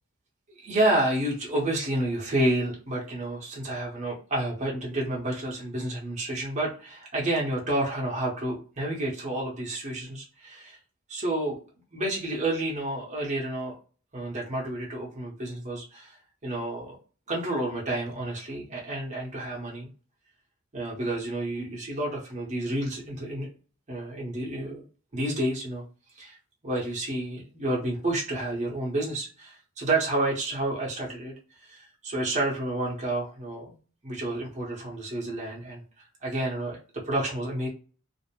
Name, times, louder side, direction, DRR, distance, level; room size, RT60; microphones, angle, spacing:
voice 1, 0.6-10.8 11.1-11.6 11.9-13.7 14.1-16.2 16.4-17.0 17.3-19.9 20.7-23.5 23.9-24.8 25.1-25.8 26.1-26.4 26.6-31.3 31.6-33.8 34.0-35.8 36.2-36.8 37.1-37.7, right 1 dB, 35° right, -3 dB, 0.8 m, -30 dB
2.5 x 2.0 x 2.9 m, 0.38 s
head